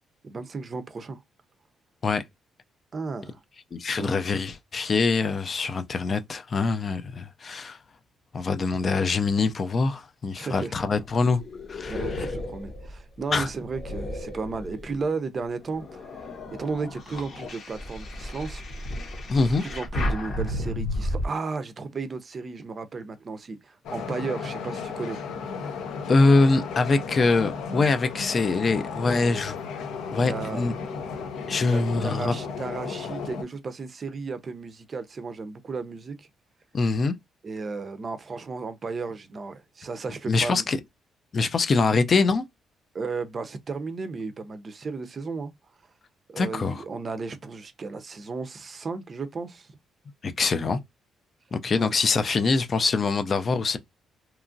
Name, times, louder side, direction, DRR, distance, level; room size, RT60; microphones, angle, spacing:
voice 1, 0.2-1.2 2.9-3.4 4.0-4.1 10.4-10.7 11.9-18.6 19.4-25.2 30.1-30.7 31.6-36.3 37.4-40.7 42.9-45.5 46.3-49.7 51.8-51.9, right 4 dB, 40° right, 0.5 m, -34 dB
voice 2, 3.7-7.8 8.3-11.4 11.7-12.3 13.3-13.5 19.3-19.6 26.1-29.6 30.1-30.7 31.5-32.3 36.7-37.1 40.3-40.8 41.3-42.4 46.4-46.8 50.2-50.8 51.5-53.8, left 3 dB, 40° left, 0.4 m, -24 dB
sound 1, 10.9-15.1 15.6-21.3, left 1 dB, 60° left, 0.9 m, -33 dB
sound 2, 23.8-33.4, left 5 dB, 85° left, 0.6 m, -34 dB
2.9 x 2.4 x 2.5 m
cardioid pair, 90°, 0 cm